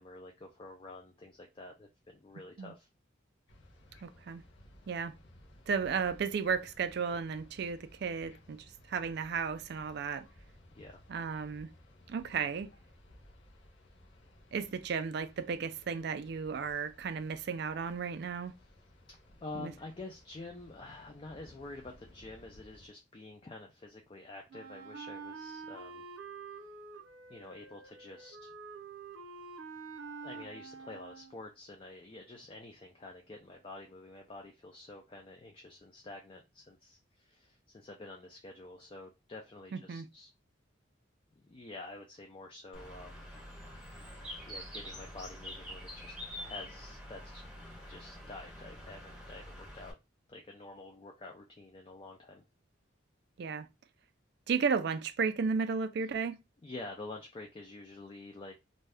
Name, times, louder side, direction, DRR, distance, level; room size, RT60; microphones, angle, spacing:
voice 1, 0.0-1.9 2.2-2.9 10.7-11.0 19.4-26.1 27.3-28.5 30.2-40.3 41.4-43.2 44.5-47.4 47.9-50.0 50.3-52.4 56.6-58.5, left 2 dB, 25° left, 0.3 m, -48 dB
sound 1, 3.5-22.9, left 1 dB, 70° left, 0.8 m, -59 dB
voice 2, 4.0-4.4 4.9-5.1 5.7-10.3 11.1-11.7 12.1-12.7 14.5-18.5 19.6-19.7 39.7-40.1 53.4-53.7 54.5-56.4, right 5 dB, 55° right, 0.3 m, -34 dB
Wind instrument woodwind instrument, 24.5-31.5, right 4 dB, 85° right, 0.7 m, -47 dB
Bird, 42.7-49.9, equal, 5° right, 0.7 m, -46 dB
2.6 x 2.3 x 3.3 m
head